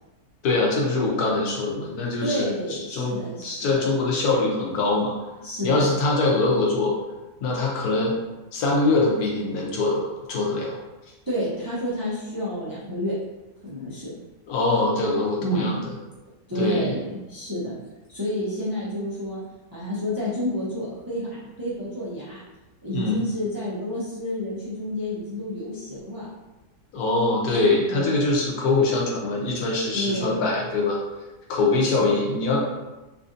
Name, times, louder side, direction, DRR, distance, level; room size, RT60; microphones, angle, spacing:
voice 1, 0.4-2.5 2.9-5.1 5.6-6.9 7.4-8.2 8.5-10.7 14.5-15.8 16.6-16.9 22.9-23.2 26.9-31.0 31.5-32.6, left 3 dB, 75° left, -2 dB, 1.2 m, -23 dB
voice 2, 2.2-3.9 5.4-6.0 11.3-13.1 13.6-14.2 15.4-15.7 16.5-17.7 18.1-19.4 19.7-22.4 22.8-26.3 27.8-28.1 29.9-30.5 31.8-32.2, equal, 30° right, -9 dB, 0.4 m, -30 dB
3.2 x 2.6 x 2.5 m, 1.1 s
omnidirectional pair, 1.6 m